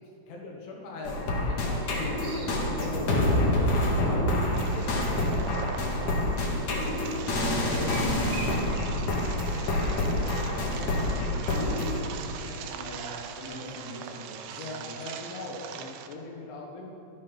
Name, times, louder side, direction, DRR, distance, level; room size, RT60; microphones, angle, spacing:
voice 1, 0.3-1.2 1.4-3.1 3.9-6.8 7.7-12.6 13.3-13.4 14.6-16.9, left 2 dB, 70° left, -1 dB, 3.6 m, -42 dB
sound 1, 1.0-12.0, left 1 dB, 55° left, 2.4 m, -27 dB
sound 2, 1.8-3.2 7.6-9.2, right 4 dB, 60° right, 3.4 m, -42 dB
sound 3, 4.5-16.1, right 8 dB, 80° right, 2.6 m, -42 dB
voice 2, 10.1-11.3 12.2-15.1, left 1 dB, 15° left, -6 dB, 2.1 m, -43 dB
14.0 x 12.0 x 5.8 m, 2.7 s
omnidirectional pair, 5.9 m